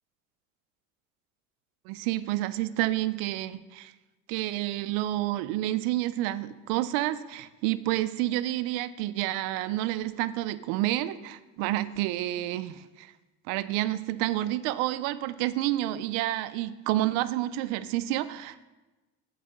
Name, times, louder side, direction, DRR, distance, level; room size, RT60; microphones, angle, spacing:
voice 1, 1.9-3.9 4.3-13.1 13.5-18.6, right 15 dB, 80° right, 14 dB, 0.5 m, -29 dB
7.6 x 4.0 x 6.5 m, 1.1 s
cardioid pair, 160°, 31 cm